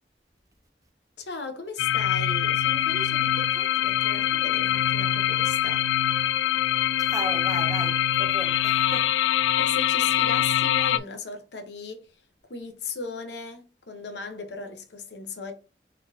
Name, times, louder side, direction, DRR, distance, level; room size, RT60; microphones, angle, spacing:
voice 1, 1.2-5.8 9.6-12.1 12.5-15.5, left 4 dB, 70° left, 1.0 m, -37 dB
sound 1, 1.8-11.0, left 11 dB, 90° left, 0.3 m, -24 dB
voice 2, 7.0-9.2, right 2 dB, 20° right, 0.6 m, -36 dB
4.0 x 3.9 x 2.7 m
head